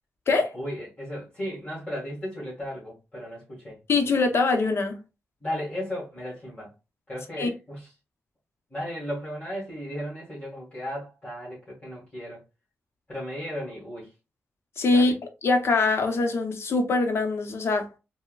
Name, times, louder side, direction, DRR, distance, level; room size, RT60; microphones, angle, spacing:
voice 1, 0.5-3.8 5.4-6.7 7.1-7.9 8.7-12.4 13.1-14.1 14.9-15.1, equal, 25° left, 1.5 m, -35 dB
voice 2, 3.9-5.0 7.4-7.5 14.8-15.1 15.4-17.9, left 3 dB, 60° left, 0.7 m, -23 dB
4.4 x 2.1 x 2.3 m
cardioid pair, 100°, 5 cm